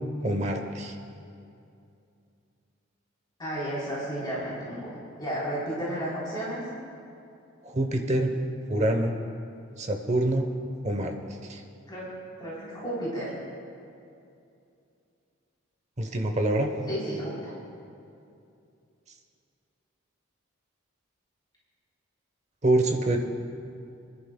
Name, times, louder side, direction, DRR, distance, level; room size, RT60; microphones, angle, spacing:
voice 1, 0.2-0.9 7.6-8.3 8.7-9.2 9.8-10.4 10.8-11.1 11.5-11.6 16.0-16.7 22.6-23.2, right 1 dB, 30° right, 5 dB, 0.8 m, -25 dB
voice 2, 3.4-6.6 11.9-12.1 12.4-13.3 16.9-17.5, right 1 dB, 20° left, -8 dB, 3.6 m, -33 dB
29.0 x 11.0 x 2.2 m, 2.6 s
head